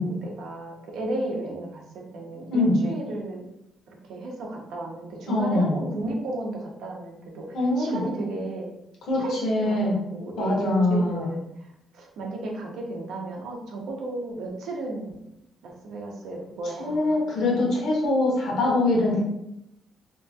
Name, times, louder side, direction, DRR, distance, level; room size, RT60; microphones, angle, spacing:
voice 1, 0.0-3.5 3.9-8.7 9.2-11.5 11.9-15.2 15.6-17.2, right 2 dB, 85° right, 0 dB, 0.6 m, -33 dB
voice 2, 5.3-5.8 7.5-8.0 9.1-10.0 10.4-11.2 16.8-19.2, left 2 dB, 75° left, -3 dB, 1.0 m, -23 dB
2.9 x 2.3 x 2.7 m, 0.83 s
cardioid pair, 135°, 0 cm